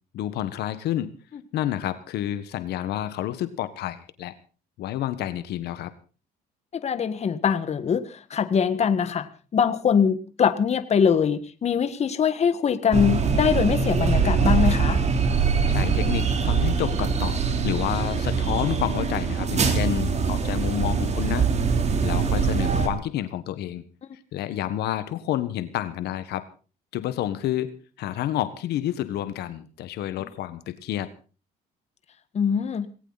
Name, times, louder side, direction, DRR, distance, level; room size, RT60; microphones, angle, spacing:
voice 1, 0.1-1.1 1.5-4.3 4.8-5.9 15.7-21.5 22.0-23.8 24.3-26.5 26.9-31.1, left 12 dB, 75° left, 12 dB, 1.4 m, -29 dB
voice 2, 6.7-15.0 30.2-30.3 32.3-32.9, left 7 dB, 40° left, 11 dB, 1.6 m, -23 dB
sound 1, 12.9-22.9, right 5 dB, 40° right, 3.4 m, -23 dB
19.0 x 17.5 x 4.1 m, 0.37 s
cardioid pair, 110°, 17 cm